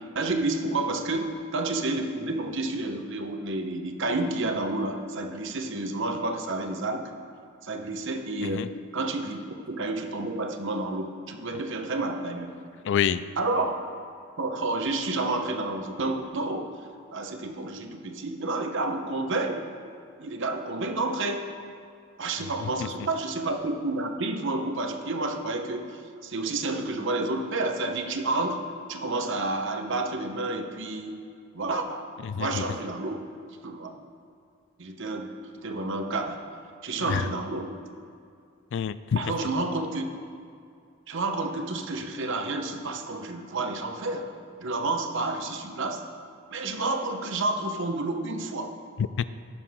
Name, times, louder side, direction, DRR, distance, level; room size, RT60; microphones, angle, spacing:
voice 1, 0.1-7.1 7.6-9.4 9.7-12.5 13.4-13.8 14.4-16.7 17.1-19.6 20.2-21.5 22.2-28.6 28.9-31.1 31.5-32.0 32.4-33.2 33.6-33.9 34.8-35.3 35.6-36.4 36.8-37.7 39.2-40.0 41.1-44.3 44.6-46.0 46.5-48.7, right 2 dB, 60° right, 5 dB, 1.0 m, -30 dB
voice 2, 12.9-13.2 22.4-22.7 32.2-32.7 37.0-37.2 38.7-39.3 49.2-49.3, left 8 dB, 60° left, 15 dB, 0.3 m, -27 dB
16.5 x 6.9 x 3.7 m, 2.4 s
head